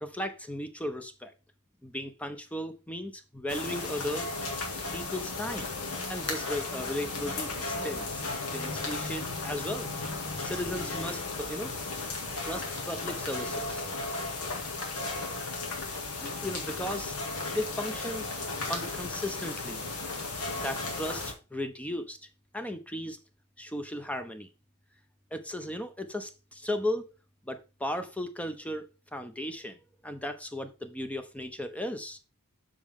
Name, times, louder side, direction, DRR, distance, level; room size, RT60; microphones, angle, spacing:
voice 1, 0.0-1.3 1.8-4.3 4.9-5.7 6.1-8.2 8.5-9.9 10.4-11.7 12.4-13.8 16.2-17.2 17.5-18.3 18.7-19.8 20.5-22.2 22.5-23.2 23.6-24.5 25.3-27.1 27.5-28.9 29.1-32.2, left 1 dB, 5° left, 0.8 m, -36 dB
sound 1, 3.5-21.3, left 3 dB, 75° left, 2.0 m, -35 dB
7.0 x 6.4 x 3.6 m
head